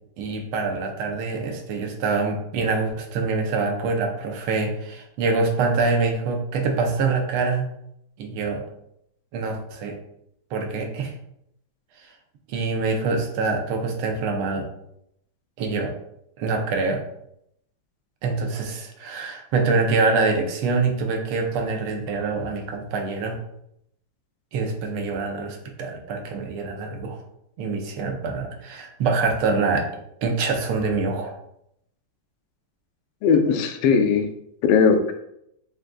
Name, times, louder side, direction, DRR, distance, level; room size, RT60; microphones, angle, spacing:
voice 1, 0.2-7.7 8.2-8.6 9.3-10.0 10.5-11.1 12.0-12.1 12.5-14.7 15.6-15.9 16.4-17.0 18.2-23.4 24.5-27.2 27.6-29.8 30.2-31.3, right 4 dB, 85° right, 3 dB, 1.6 m, -25 dB
voice 2, 33.2-34.3 34.6-35.1, left 5 dB, 85° left, 6 dB, 1.5 m, -18 dB
6.1 x 2.5 x 2.3 m, 0.76 s
omnidirectional pair, 2.3 m